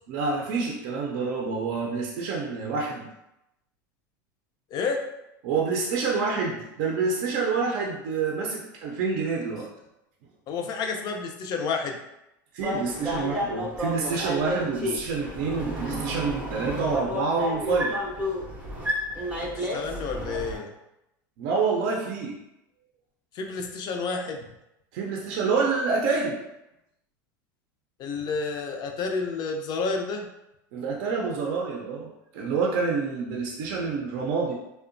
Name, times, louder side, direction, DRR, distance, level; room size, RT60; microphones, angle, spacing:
voice 1, 0.1-3.1 5.4-9.7 12.5-17.9 21.4-22.4 24.9-26.4 30.7-34.5, right 4 dB, 60° right, -1 dB, 0.5 m, -27 dB
voice 2, 4.7-5.0 10.5-12.0 19.4-20.7 23.3-24.5 28.0-30.3, left 4 dB, 40° left, 4 dB, 0.4 m, -30 dB
sound 1, 12.6-20.6, equal, 10° right, 0.5 m, -31 dB
2.7 x 2.1 x 2.5 m, 0.89 s
hypercardioid pair, 105°, 11 cm